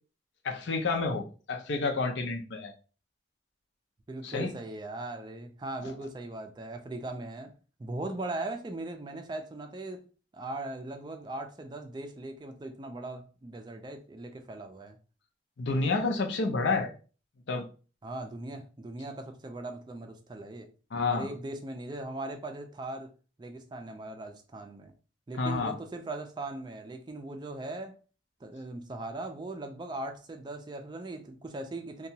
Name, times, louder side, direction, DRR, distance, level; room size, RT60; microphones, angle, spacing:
voice 1, 0.4-2.7 4.2-4.5 15.6-16.9 17.5-17.6 20.9-21.3 25.3-25.8, left 3 dB, 80° left, 0.5 m, -29 dB
voice 2, 4.1-7.5 7.8-10.0 10.3-15.0 18.0-20.7 21.1-23.1 23.4-24.9 25.3-28.0 28.4-32.1, right 2 dB, 25° right, 0.3 m, -39 dB
2.8 x 2.2 x 2.7 m
head